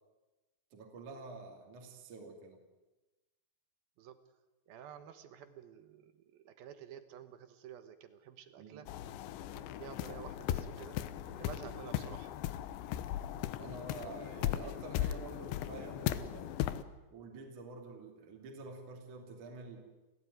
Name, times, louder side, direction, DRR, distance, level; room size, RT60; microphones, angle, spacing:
voice 1, 0.7-2.6 8.6-8.9 13.6-16.5 17.1-19.9, right 3 dB, 45° right, 2 dB, 3.7 m, -48 dB
voice 2, 4.7-8.9 9.4-11.0 11.3-12.3, right 9 dB, 70° right, 11 dB, 2.5 m, -51 dB
sound 1, 8.9-16.8, left 12 dB, 80° left, 3.2 m, -38 dB
29.0 x 16.0 x 9.3 m, 1.1 s
omnidirectional pair, 5.3 m